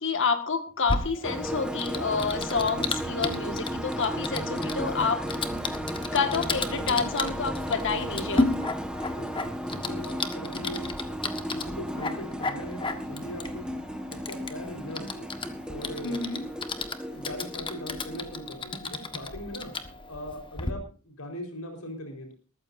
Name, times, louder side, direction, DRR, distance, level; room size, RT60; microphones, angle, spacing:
voice 1, 0.0-5.2 6.1-8.5 16.0-16.5, left 5 dB, 60° left, 7 dB, 1.8 m, -28 dB
Typing, 0.9-20.7, left 3 dB, 25° left, 1.5 m, -34 dB
sound 1, 1.2-18.6, equal, 5° right, 1.4 m, -35 dB
voice 2, 9.2-11.2 11.5-13.8 14.1-15.3 15.7-16.3 17.1-19.7 20.1-22.3, left 1 dB, 80° left, 3 dB, 4.5 m, -40 dB
20.5 x 14.5 x 2.7 m, 0.36 s
head